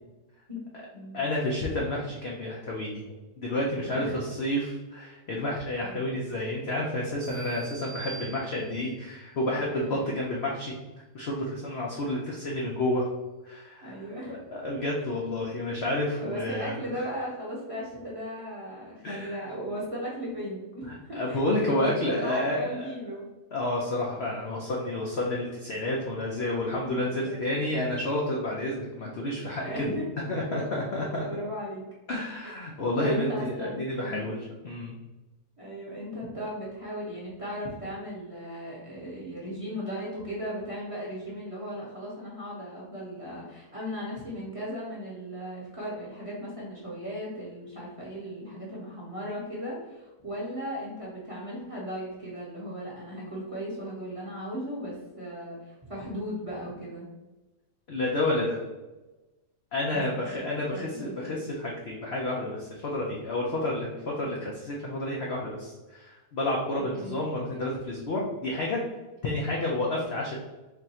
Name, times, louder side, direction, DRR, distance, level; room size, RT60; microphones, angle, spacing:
voice 1, 1.1-3.0 3.4-10.7 11.1-13.1 13.4-16.8 19.0-19.5 20.9-22.9 23.5-29.9 30.3-31.2 32.1-34.9 57.9-58.6 59.7-68.8 69.2-70.4, left 1 dB, 60° left, -3 dB, 0.7 m, -30 dB
voice 2, 3.8-4.2 4.5-4.6 5.8-6.1 9.7-10.2 13.8-14.4 16.2-21.4 21.7-23.2 26.8-27.7 29.6-30.0 30.5-30.6 31.0-31.8 33.0-34.3 35.6-57.1 59.9-61.4 64.2-64.3 66.8-67.2, equal, 25° right, -6 dB, 0.9 m, -37 dB
sound 1, 7.2-9.0, right 5 dB, 55° right, 0.5 m, -44 dB
3.4 x 2.6 x 4.2 m, 1.1 s
omnidirectional pair, 1.8 m